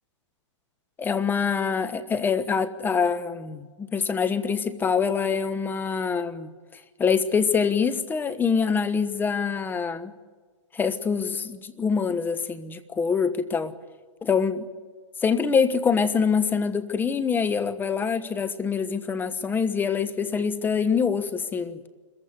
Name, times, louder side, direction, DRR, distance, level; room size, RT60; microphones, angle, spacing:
voice 1, 1.0-6.5 7.0-10.1 10.7-13.7 14.2-14.7 15.2-21.9, left 6 dB, 10° left, 11 dB, 1.1 m, -25 dB
26.0 x 15.0 x 9.5 m, 1.4 s
hypercardioid pair, 135°, 16 cm